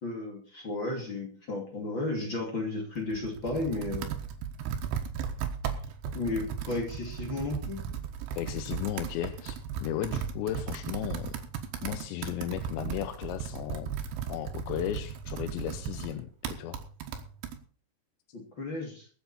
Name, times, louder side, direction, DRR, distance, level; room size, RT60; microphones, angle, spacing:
voice 1, 0.0-4.1 6.1-7.8 18.3-19.1, left 2 dB, 35° left, 0 dB, 2.5 m, -33 dB
Computer keyboard, 3.0-17.6, right 7 dB, 85° right, 3.7 m, -36 dB
voice 2, 8.4-11.4 11.8-13.9 14.3-16.8, left 12 dB, 85° left, 8 dB, 3.0 m, -35 dB
22.0 x 7.9 x 4.3 m, 0.43 s
omnidirectional pair, 5.2 m